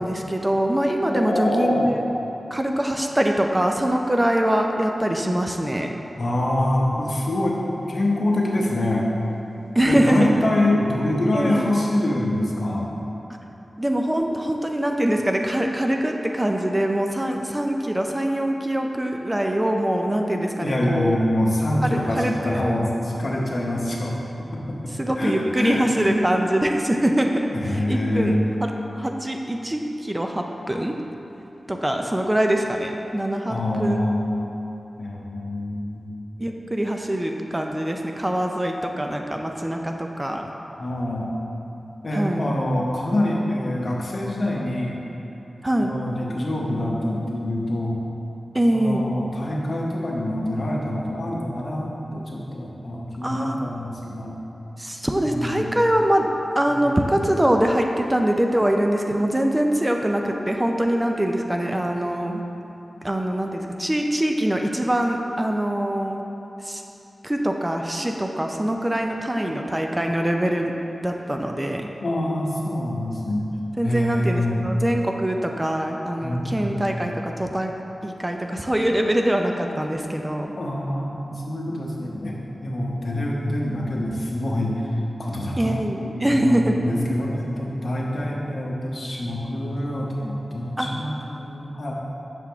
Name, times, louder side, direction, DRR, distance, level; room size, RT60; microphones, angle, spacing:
voice 1, 0.0-2.0 2.5-5.9 9.7-10.3 11.3-11.7 13.8-21.3 21.8-22.8 24.9-31.0 31.7-34.1 36.4-40.5 42.1-42.5 45.6-45.9 48.5-49.1 53.2-53.6 54.8-56.3 56.6-62.4 63.0-66.2 66.6-66.8 67.2-70.7 71.0-71.9 73.8-77.1 77.4-77.7 78.0-80.5 85.6-86.8 90.8-90.9, right 1 dB, 20° right, 3 dB, 0.4 m, -23 dB
voice 2, 1.1-1.9 6.2-9.1 9.8-12.9 20.5-24.2 24.5-26.2 27.5-28.4 33.5-34.3 35.0-36.1 40.8-41.3 42.0-44.9 45.8-48.0 48.7-54.4 55.3-55.7 56.7-57.0 72.0-73.4 73.8-74.7 76.2-76.8 80.6-84.8 85.2-85.8 86.3-92.0, left 1 dB, 60° left, -2 dB, 0.9 m, -25 dB
6.9 x 4.8 x 3.4 m, 3.0 s
wide cardioid pair, 60°, 0 cm